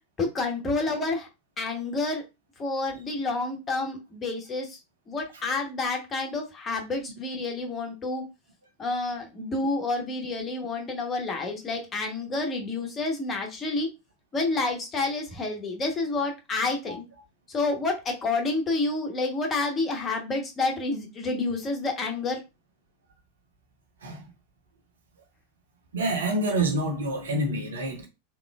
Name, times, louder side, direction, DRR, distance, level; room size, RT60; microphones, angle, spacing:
voice 1, 0.2-1.3 1.6-2.2 2.6-4.8 5.1-8.2 8.8-13.9 14.3-17.0 17.5-22.4, left 3 dB, 20° left, 1.1 m, -29 dB
voice 2, 25.9-28.1, right 1 dB, 65° right, 0.9 m, -27 dB
3.6 x 3.0 x 2.3 m
figure-of-eight pair, 90°, 0 cm